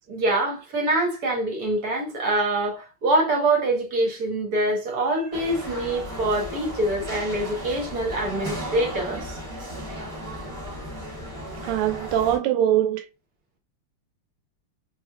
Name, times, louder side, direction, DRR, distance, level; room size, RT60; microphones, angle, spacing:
voice 1, 0.1-9.4, right 1 dB, 55° right, 1.2 m, -25 dB
sound 1, 5.3-12.4, equal, 30° right, 1.3 m, -35 dB
voice 2, 11.6-13.0, right 11 dB, 80° right, 1.4 m, -22 dB
3.3 x 3.1 x 2.3 m
omnidirectional pair, 2.4 m